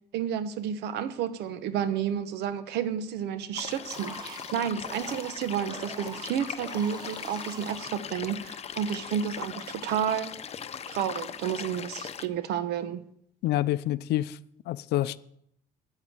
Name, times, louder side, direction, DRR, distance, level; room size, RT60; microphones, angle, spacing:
voice 1, 0.1-10.3 10.9-13.0, right 8 dB, 80° right, 1.1 m, -31 dB
sound 1, 3.5-12.3, left 8 dB, 40° left, 0.8 m, -39 dB
sound 2, 3.9-8.5, right 3 dB, 25° right, 1.1 m, -45 dB
voice 2, 13.4-14.4 14.7-15.2, left 14 dB, 75° left, 0.6 m, -27 dB
9.5 x 8.2 x 8.8 m
cardioid pair, 110°, 17 cm